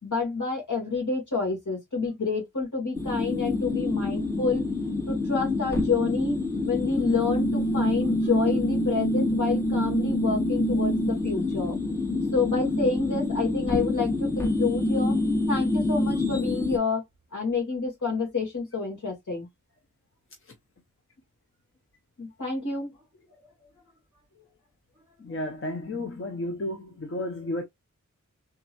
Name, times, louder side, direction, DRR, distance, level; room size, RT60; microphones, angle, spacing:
voice 1, 0.0-4.6 5.1-6.4 6.6-11.8 12.3-15.2 15.5-17.0 17.3-19.5 22.2-22.9, left 4 dB, 70° left, 2.2 m, -28 dB
sound 1, 2.9-16.8, left 2 dB, 10° left, 0.9 m, -26 dB
voice 2, 25.2-27.6, left 1 dB, 45° left, 0.8 m, -32 dB
3.6 x 3.0 x 2.6 m
cardioid pair, 45°, 31 cm